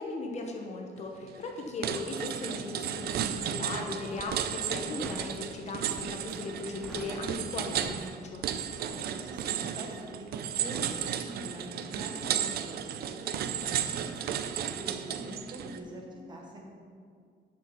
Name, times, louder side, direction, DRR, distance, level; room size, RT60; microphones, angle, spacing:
voice 1, 0.0-8.4, left 3 dB, 35° left, 1 dB, 0.9 m, -37 dB
sound 1, 1.2-1.5 1.8-15.8, right 9 dB, 55° right, 0.5 m, -34 dB
Crackle, 2.1-3.2 3.8-4.4 5.0-5.4 5.8-6.3 6.6-8.5 8.8-9.0, equal, ahead, 0.6 m, -48 dB
voice 2, 8.7-16.7, right 1 dB, 25° right, 0 dB, 1.2 m, -44 dB
8.1 x 5.9 x 5.8 m, 2.2 s
cardioid pair, 180°, 19 cm